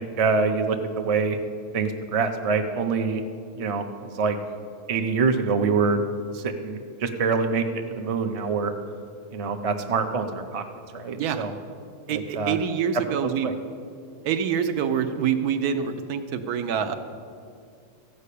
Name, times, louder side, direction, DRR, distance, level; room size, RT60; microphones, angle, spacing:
voice 1, 0.0-1.4 1.7-3.2 3.5-4.4 4.9-6.0 6.3-8.7 9.3-10.7 10.9-11.5 12.1-12.6 13.1-13.2 13.4-13.5, right 4 dB, 40° right, 6 dB, 0.5 m, -25 dB
voice 2, 12.1-13.5 14.2-16.9, right 7 dB, 80° right, 8 dB, 1.2 m, -26 dB
14.0 x 5.5 x 8.4 m, 2.3 s
omnidirectional pair, 1.6 m